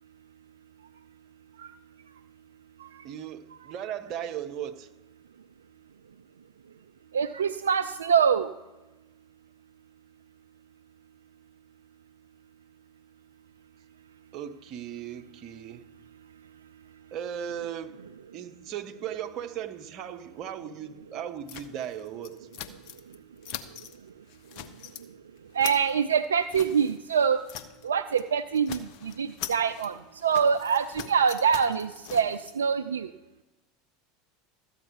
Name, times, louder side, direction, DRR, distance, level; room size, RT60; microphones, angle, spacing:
voice 1, 3.0-4.9 14.3-15.8 17.1-18.0 18.3-22.5, right 9 dB, 45° right, 7 dB, 1.0 m, -37 dB
voice 2, 7.1-8.5 25.5-27.4 27.8-29.9 30.2-33.1, right 7 dB, 80° right, 10 dB, 0.3 m, -25 dB
sound 1, 21.5-23.2 23.4-24.0 24.3-25.1 25.4-27.9 28.1-28.3 28.5-32.5, left 9 dB, 55° left, 0.8 m, -42 dB
13.5 x 8.9 x 4.7 m, 1.1 s
figure-of-eight pair, 80°, 0 cm